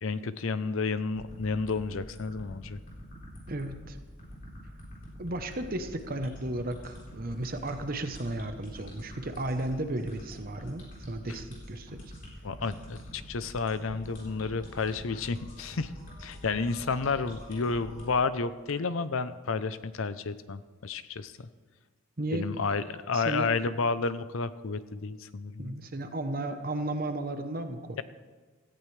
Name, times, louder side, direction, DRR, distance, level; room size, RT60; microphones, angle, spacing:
voice 1, 0.0-2.8 12.4-15.9 16.2-21.5 22.3-25.8, left 4 dB, 70° left, 14 dB, 0.6 m, -31 dB
sound 1, 1.1-18.1, equal, 40° left, 4.1 m, -46 dB
voice 2, 3.5-4.0 5.2-12.0 22.2-22.5 23.1-23.5 25.6-28.0, right 1 dB, 40° right, 7 dB, 0.9 m, -34 dB
17.0 x 14.5 x 3.3 m, 1.4 s
head